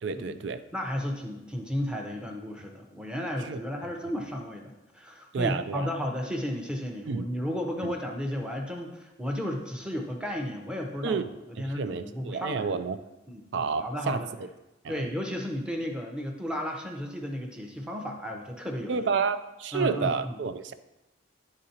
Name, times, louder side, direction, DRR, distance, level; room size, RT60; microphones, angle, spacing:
voice 1, 0.0-0.6 3.4-3.6 5.3-5.9 7.1-7.2 7.8-7.9 11.0-11.2 11.6-13.0 13.5-14.2 14.8-15.1 18.9-20.7, right 5 dB, 65° right, 11 dB, 0.4 m, -30 dB
voice 2, 0.7-12.7 13.3-14.3 14.9-19.1 19.7-20.4, equal, 5° right, 1 dB, 0.7 m, -34 dB
10.5 x 3.8 x 2.8 m, 0.96 s
head